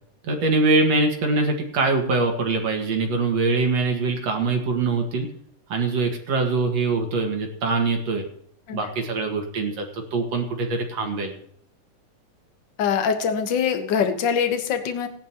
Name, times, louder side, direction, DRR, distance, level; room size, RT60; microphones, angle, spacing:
voice 1, 0.2-5.3 5.7-8.2 8.7-11.3, right 3 dB, 55° right, 2 dB, 2.8 m, -23 dB
voice 2, 12.8-15.1, left 7 dB, 55° left, 7 dB, 1.2 m, -23 dB
18.5 x 10.5 x 3.0 m, 0.64 s
omnidirectional pair, 3.8 m